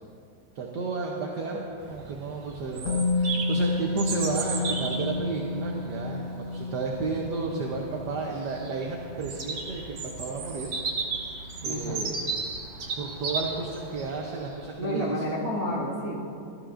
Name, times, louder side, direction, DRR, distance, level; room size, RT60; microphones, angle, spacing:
voice 1, 0.5-10.7 11.6-12.3 13.0-15.4, right 4 dB, 65° right, -1 dB, 1.3 m, -32 dB
Bird vocalization bird call bird song, 1.8-14.5, right 4 dB, 90° right, 1.9 m, -35 dB
Musical instrument, 2.9-10.8 11.0-11.2, left 3 dB, 80° left, 0.7 m, -31 dB
voice 2, 11.6-12.0 14.7-16.1, equal, 20° right, -8 dB, 3.0 m, -30 dB
14.0 x 13.5 x 2.5 m, 2.4 s
omnidirectional pair, 2.1 m